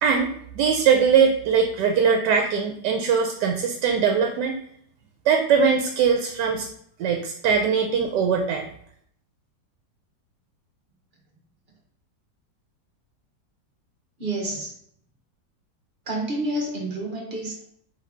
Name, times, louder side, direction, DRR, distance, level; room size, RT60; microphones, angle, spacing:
voice 1, 0.0-4.6 5.3-6.7 7.0-8.6, right 6 dB, 80° right, 3 dB, 1.2 m, -21 dB
voice 2, 14.2-14.7 16.1-17.6, right 1 dB, 40° right, -1 dB, 1.1 m, -29 dB
4.0 x 3.3 x 3.6 m, 0.66 s
omnidirectional pair, 1.8 m